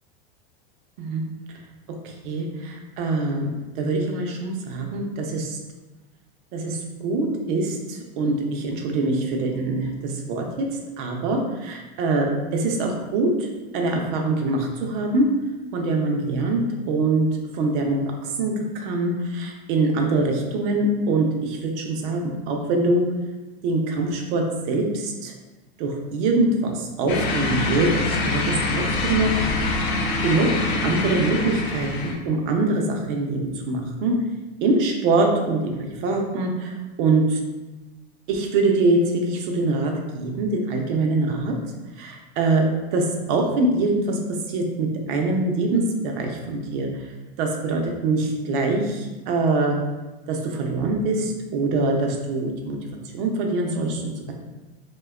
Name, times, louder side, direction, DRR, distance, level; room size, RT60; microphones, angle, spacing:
voice 1, 2.0-5.6 6.5-10.7 11.0-12.3 12.5-15.3 15.7-17.3 17.5-23.0 23.6-25.3 25.8-29.4 30.2-34.1 34.6-37.4 38.3-41.5 42.0-42.6 42.9-44.2 44.5-46.9 47.4-49.8 50.3-52.8 53.1-54.3, right 2 dB, 55° right, 2 dB, 0.6 m, -24 dB
sound 1, 27.1-32.1, left 2 dB, 50° left, 0.5 m, -25 dB
2.6 x 2.2 x 2.3 m, 1.1 s
hypercardioid pair, 110°, 30 cm